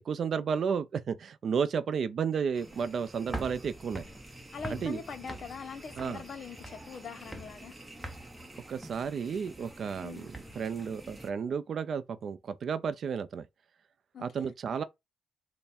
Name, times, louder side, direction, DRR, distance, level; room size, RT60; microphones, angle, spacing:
voice 1, 0.0-4.1 4.7-5.0 6.0-6.2 8.7-13.4 14.2-14.8, right 6 dB, 55° right, 0.4 m, -32 dB
sound 1, 2.5-11.3, right 1 dB, 10° right, 0.8 m, -45 dB
voice 2, 4.5-7.8 10.0-10.3 14.1-14.5, left 5 dB, 55° left, 0.6 m, -42 dB
3.4 x 2.1 x 4.3 m
cardioid pair, 90°, 0 cm